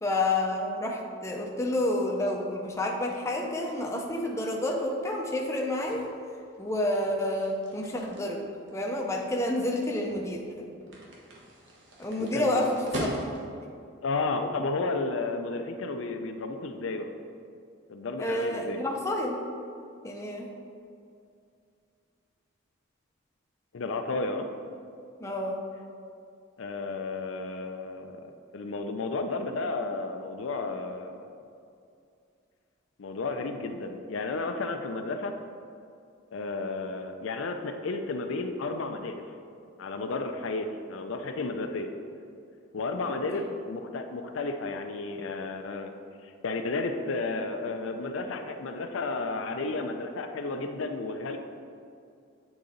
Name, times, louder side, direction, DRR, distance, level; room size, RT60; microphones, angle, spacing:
voice 1, 0.0-6.1 6.6-8.4 8.7-10.4 12.0-13.1 18.2-19.4 20.0-20.5 25.2-25.6, left 1 dB, 15° left, 0 dB, 0.5 m, -29 dB
sound 1, 3.3-13.7, right 1 dB, 60° right, 1.1 m, -42 dB
voice 2, 12.2-12.7 14.0-17.1 17.9-18.8 23.7-24.5 26.6-31.3 33.0-35.3 36.3-39.2 39.8-41.9 42.7-45.9 46.2-51.4, left 3 dB, 75° left, 6 dB, 0.5 m, -32 dB
8.4 x 3.9 x 3.9 m, 2.4 s
head